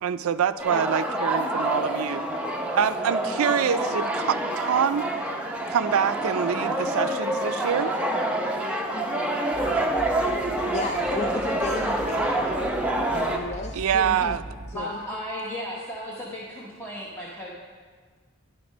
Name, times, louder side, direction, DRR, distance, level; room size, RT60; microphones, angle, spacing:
voice 1, 0.0-2.2 2.7-5.1 5.7-7.9 13.7-14.4, right 8 dB, 75° right, 12 dB, 0.4 m, -25 dB
sound 1, 0.6-13.4, right 1 dB, 5° right, 0.7 m, -27 dB
sound 2, 9.5-14.7, right 1 dB, 75° left, 2.8 m, -40 dB
voice 2, 10.7-12.5 13.1-14.4 14.7-15.0, left 3 dB, 30° left, 4 dB, 0.4 m, -34 dB
voice 3, 14.7-17.5, equal, 10° left, -5 dB, 1.0 m, -35 dB
10.5 x 6.0 x 5.1 m, 1.5 s
head